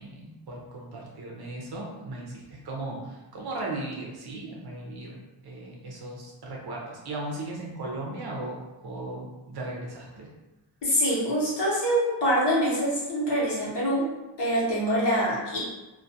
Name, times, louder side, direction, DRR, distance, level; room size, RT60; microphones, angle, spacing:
voice 1, 0.0-10.3, right 2 dB, 55° right, -2 dB, 0.6 m, -37 dB
voice 2, 10.8-14.1 14.4-15.6, equal, 55° left, -6 dB, 0.9 m, -25 dB
2.3 x 2.2 x 2.6 m, 1.1 s
wide cardioid pair, 160°, 48 cm